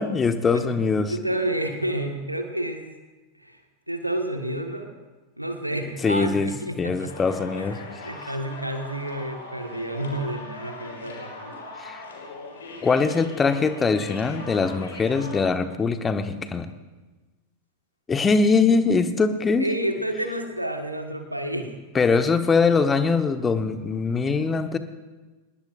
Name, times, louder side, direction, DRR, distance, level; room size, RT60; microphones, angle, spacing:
voice 1, 0.0-1.1 6.0-6.5 6.8-7.8 11.8-12.0 12.8-16.7 18.1-19.7 21.9-24.8, left 4 dB, 15° left, 9 dB, 1.2 m, -22 dB
voice 2, 1.1-2.8 3.4-3.6 3.9-4.9 5.4-7.1 7.5-7.7 8.0-11.5 19.6-21.7 22.1-22.2, right 1 dB, 90° right, 5 dB, 1.6 m, -30 dB
sound 1, 7.1-15.5, left 2 dB, 65° left, 4.1 m, -40 dB
25.0 x 20.0 x 2.6 m, 1.2 s
figure-of-eight pair, 90°, 0 cm